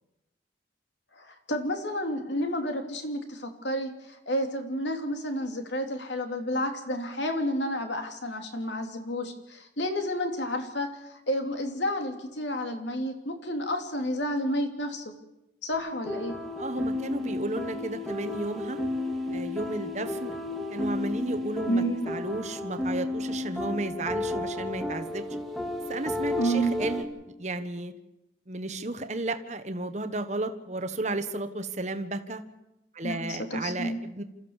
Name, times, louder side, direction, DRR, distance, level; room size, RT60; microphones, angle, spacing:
voice 1, 1.1-15.0 15.6-16.4 21.7-22.2 26.4-26.7 33.0-34.0, equal, 75° left, 5 dB, 2.9 m, -30 dB
sound 1, 15.7-27.0, left 2 dB, ahead, 2.2 m, -33 dB
voice 2, 16.6-18.8 19.3-20.4 20.7-25.3 25.9-27.0 27.4-27.9 28.5-32.4 32.9-34.2, right 2 dB, 40° right, 9 dB, 1.3 m, -33 dB
28.0 x 14.0 x 7.2 m, 0.93 s
head